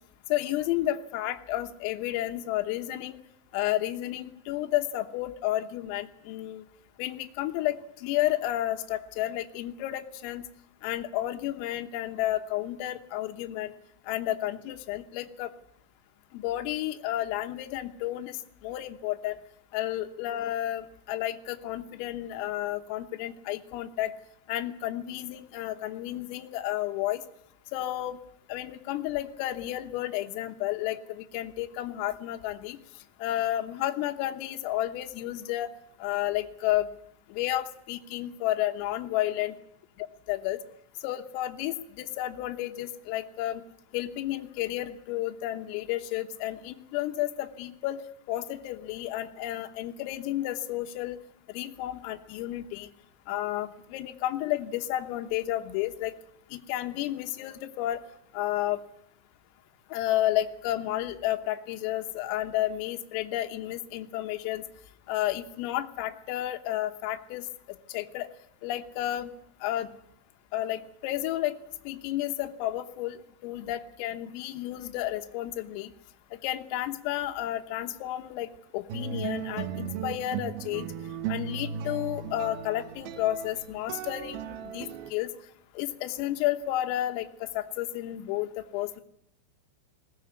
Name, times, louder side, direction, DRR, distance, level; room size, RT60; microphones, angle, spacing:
voice 1, 0.3-3.2 3.5-6.6 7.0-10.4 10.8-13.7 14.1-15.5 16.3-19.4 19.7-24.1 24.5-27.2 27.7-28.2 28.5-32.8 33.2-35.7 36.0-36.9 37.3-39.5 40.3-40.6 41.0-43.6 43.9-51.2 51.5-52.9 53.3-56.1 56.5-58.0 58.3-58.8 59.9-64.7 65.1-68.3 68.6-69.3 69.6-69.9 70.5-71.6 71.9-75.9 76.4-80.9 81.3-85.3 85.8-89.0, left 14 dB, 85° left, 6 dB, 3.8 m, -31 dB
sound 1, 78.9-85.1, right 8 dB, 80° right, 2.3 m, -36 dB
21.0 x 17.5 x 9.6 m, 0.75 s
omnidirectional pair, 5.8 m